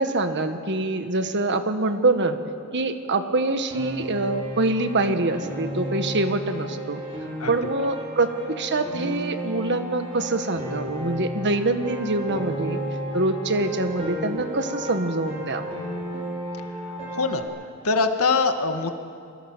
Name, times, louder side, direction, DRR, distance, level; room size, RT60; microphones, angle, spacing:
voice 1, 0.0-2.4 2.7-7.0 7.5-12.8 13.1-15.7, right 2 dB, 55° right, 8 dB, 1.7 m, -25 dB
Piano, 3.7-17.4, right 1 dB, 25° right, 5.6 m, -33 dB
voice 2, 17.1-17.5 17.8-18.9, left 4 dB, 80° left, 7 dB, 1.8 m, -22 dB
28.0 x 23.5 x 7.5 m, 2.5 s
head